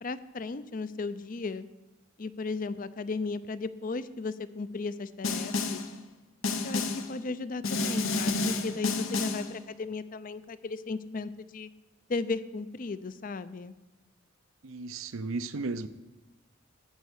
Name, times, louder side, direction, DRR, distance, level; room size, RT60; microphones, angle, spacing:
voice 1, 0.0-1.7 2.2-5.8 6.6-11.7 12.1-13.7, left 3 dB, 40° left, 14 dB, 0.5 m, -35 dB
Snare drum, 5.2-5.9 6.4-7.1 7.6-9.5, left 3 dB, 85° left, 1.0 m, -30 dB
voice 2, 14.6-15.9, right 3 dB, 90° right, 13 dB, 0.6 m, -34 dB
14.0 x 4.6 x 8.2 m, 1.1 s
head